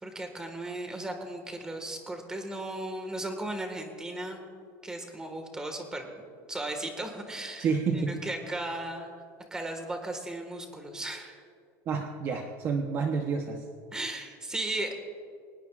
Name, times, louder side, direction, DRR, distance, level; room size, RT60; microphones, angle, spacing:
voice 1, 0.0-4.4 4.8-6.1 6.5-7.7 7.9-9.1 9.5-11.4 13.9-14.9, right 1 dB, 10° right, 4 dB, 1.6 m, -36 dB
voice 2, 7.6-8.2 11.9-13.7, right 5 dB, 30° right, 3 dB, 0.9 m, -29 dB
24.0 x 19.0 x 2.5 m, 2.3 s
cardioid pair, 175°, 8 cm